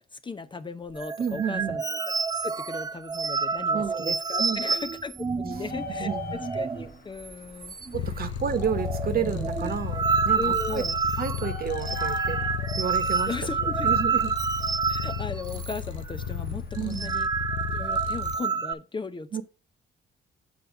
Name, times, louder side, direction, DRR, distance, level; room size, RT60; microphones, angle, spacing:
voice 1, 0.0-2.1 2.4-7.8 10.4-11.0 13.3-13.9 14.9-17.3 17.7-19.4, left 4 dB, 25° left, 0.6 m, -37 dB
sound 1, 0.9-6.9 7.2-7.3 7.6-8.2 8.5-15.8 16.1-16.3 16.7-18.7, right 5 dB, 20° right, 0.4 m, -29 dB
voice 2, 1.2-1.8 3.7-4.6 5.4-5.6 6.0-6.2 7.9-10.8 11.2-12.4 12.8-13.3 13.8-14.3 16.7-17.1 19.3-19.4, right 7 dB, 50° right, 1.1 m, -31 dB
Bird, 5.5-16.7, left 6 dB, 50° left, 1.2 m, -44 dB
Purr, 7.9-18.4, left 8 dB, 70° left, 0.6 m, -34 dB
7.3 x 4.3 x 5.2 m
cardioid pair, 90°, 20 cm